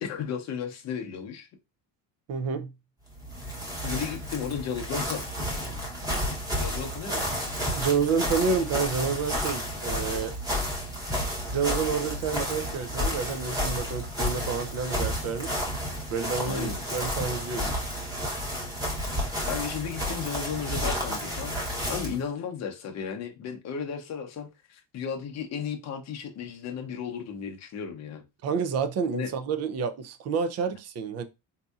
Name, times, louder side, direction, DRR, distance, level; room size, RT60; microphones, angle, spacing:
voice 1, 0.0-1.5 3.8-5.2 6.6-7.4 16.5-16.7 17.6-17.7 19.1-28.2 29.1-29.3, left 7 dB, 40° left, 0.7 m, -34 dB
voice 2, 2.3-2.7 7.7-10.3 11.5-15.5 16.1-17.7 28.4-31.2, right 5 dB, 40° right, 0.5 m, -29 dB
sound 1, 3.1-22.2, equal, 10° right, 1.0 m, -31 dB
4.0 x 2.7 x 2.3 m
cardioid pair, 145°, 41 cm